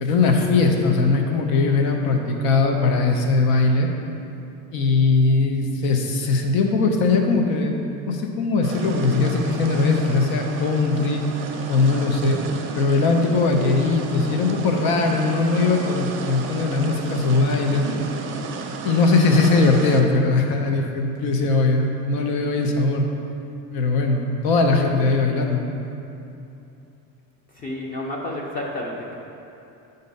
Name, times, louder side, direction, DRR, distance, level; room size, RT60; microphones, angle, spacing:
voice 1, 0.0-3.9 4.7-11.2 11.7-12.4 12.7-17.9 18.8-23.1 23.7-25.7, left 3 dB, 85° left, 3 dB, 0.8 m, -20 dB
sound 1, 8.6-20.0, right 5 dB, 35° right, 0.4 m, -33 dB
voice 2, 27.5-29.2, left 1 dB, 25° left, -1 dB, 0.5 m, -30 dB
7.8 x 2.7 x 5.3 m, 2.8 s
cardioid pair, 165°, 35 cm